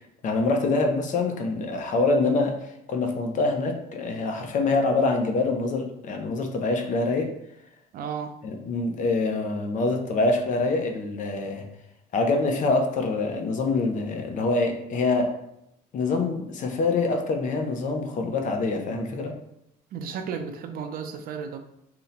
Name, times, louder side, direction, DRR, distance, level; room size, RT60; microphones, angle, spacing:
voice 1, 0.2-7.3 8.4-11.6 12.1-15.3 15.9-19.3, left 3 dB, 50° left, 4 dB, 0.6 m, -25 dB
voice 2, 7.9-8.3 19.9-21.6, right 6 dB, 60° right, 7 dB, 0.4 m, -33 dB
2.7 x 2.1 x 3.8 m, 0.80 s
cardioid pair, 110°, 17 cm